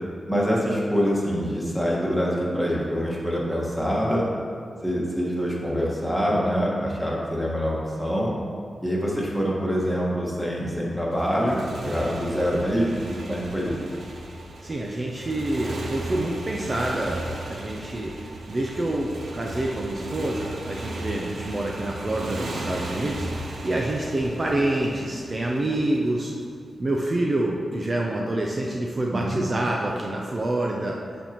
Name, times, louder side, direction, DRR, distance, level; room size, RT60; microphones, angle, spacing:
voice 1, 0.3-4.2 4.8-8.3 8.8-13.7 29.1-29.4, equal, 5° left, -5 dB, 1.5 m, -25 dB
Motorcycle, 11.1-26.3, right 1 dB, 80° right, 0.8 m, -36 dB
voice 2, 14.6-18.1 18.5-26.3 26.8-31.0, right 1 dB, 35° right, -1 dB, 0.6 m, -27 dB
10.5 x 4.4 x 3.0 m, 2.2 s
wide cardioid pair, 90°, 0 cm